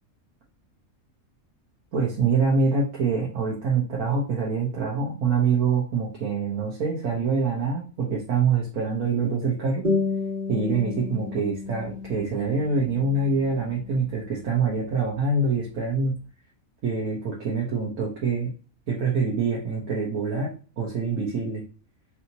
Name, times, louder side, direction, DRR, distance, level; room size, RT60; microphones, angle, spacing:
voice 1, 1.9-9.8 10.5-16.1 16.8-18.5 18.9-21.6, right 4 dB, 75° right, -4 dB, 1.5 m, -25 dB
sound 1, 9.8-14.8, left 3 dB, 30° right, 1.7 m, -32 dB
4.8 x 2.9 x 2.8 m, 0.36 s
omnidirectional pair, 1.5 m